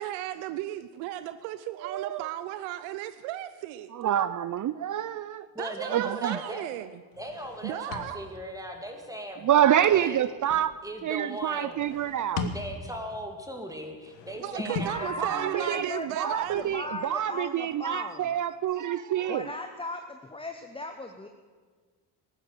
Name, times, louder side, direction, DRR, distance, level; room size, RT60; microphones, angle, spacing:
voice 1, 0.0-3.9 5.6-7.0 7.6-8.3 14.4-16.6, right 14 dB, 80° right, 13 dB, 0.7 m, -35 dB
voice 2, 1.8-2.3 3.9-5.5 5.9-6.5 9.4-10.7 11.0-12.5 15.2-15.9 16.2-19.5, right 11 dB, 40° right, 16 dB, 0.5 m, -27 dB
voice 3, 5.5-6.7 7.2-10.2 10.8-11.8 12.5-15.8, equal, 5° right, 3 dB, 2.7 m, -38 dB
sound 1, 7.1-8.6 9.3-10.7 11.6-13.1 13.9-15.1 16.3-17.2, left 6 dB, 90° left, 1.4 m, -40 dB
voice 4, 14.6-18.3 19.3-21.3, left 2 dB, 10° left, 5 dB, 1.0 m, -37 dB
14.5 x 11.5 x 6.6 m, 1.5 s
supercardioid pair, 70°, 47 cm